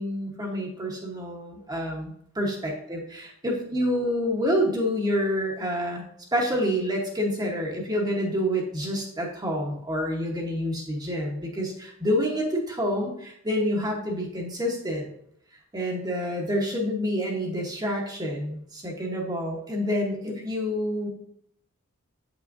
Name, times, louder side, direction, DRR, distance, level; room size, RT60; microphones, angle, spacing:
voice 1, 0.0-2.1 2.3-6.0 6.3-15.1 15.7-21.1, equal, 20° right, -1 dB, 1.0 m, -28 dB
7.9 x 5.9 x 2.6 m, 0.69 s
head